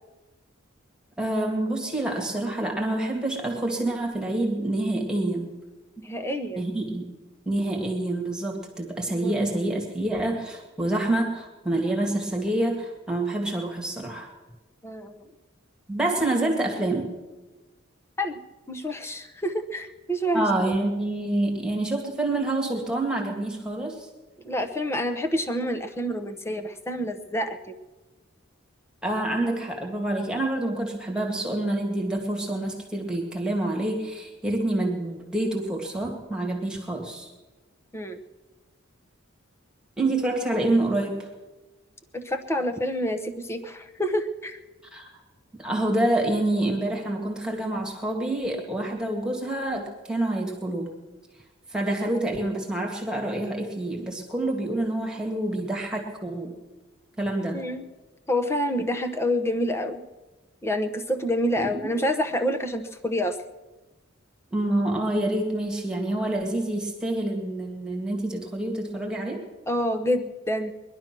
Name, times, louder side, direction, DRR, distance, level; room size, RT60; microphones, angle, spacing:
voice 1, 1.2-5.5 6.6-7.1 7.5-14.3 15.9-17.1 20.3-24.1 29.0-37.3 40.0-41.3 44.9-45.1 45.6-50.9 51.7-56.5 57.2-57.6 61.6-61.9 64.5-69.4, right 1 dB, 5° right, 0 dB, 2.1 m, -27 dB
voice 2, 6.0-6.6 9.2-9.5 14.8-15.2 18.2-18.4 18.7-20.5 24.4-27.6 37.9-38.2 42.1-44.6 57.5-57.9 58.3-60.0 60.6-63.4 69.7-70.7, equal, 15° left, 7 dB, 0.9 m, -27 dB
20.5 x 11.5 x 6.1 m, 1.2 s
head